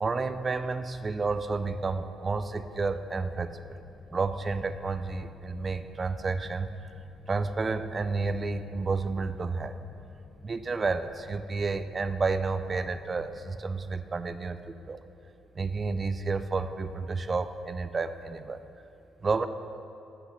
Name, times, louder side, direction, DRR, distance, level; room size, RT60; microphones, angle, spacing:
voice 1, 0.0-3.8 4.1-6.9 7.3-9.8 10.4-15.0 15.5-18.6 19.2-19.5, right 4 dB, 35° right, 11 dB, 0.4 m, -31 dB
sound 1, 3.2-16.5, left 3 dB, 30° left, 0.9 m, -55 dB
7.7 x 5.8 x 6.4 m, 2.7 s
cardioid pair, 90°, 0 cm